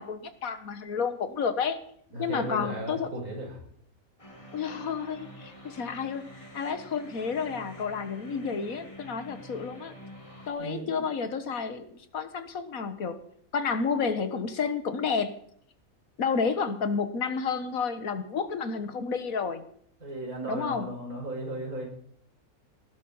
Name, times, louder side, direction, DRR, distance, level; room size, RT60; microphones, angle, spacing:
voice 1, 0.0-1.8 2.2-3.1 4.5-9.9 10.5-13.2 13.5-15.3 16.2-19.6 20.5-20.9, left 5 dB, 75° left, 11 dB, 1.7 m, -31 dB
voice 2, 2.1-3.5 10.6-11.5 20.0-21.8, right 1 dB, 85° right, 0 dB, 5.8 m, -36 dB
sound 1, 4.2-10.5, equal, 20° left, 2.4 m, -47 dB
19.0 x 11.5 x 5.5 m, 0.64 s
omnidirectional pair, 1.5 m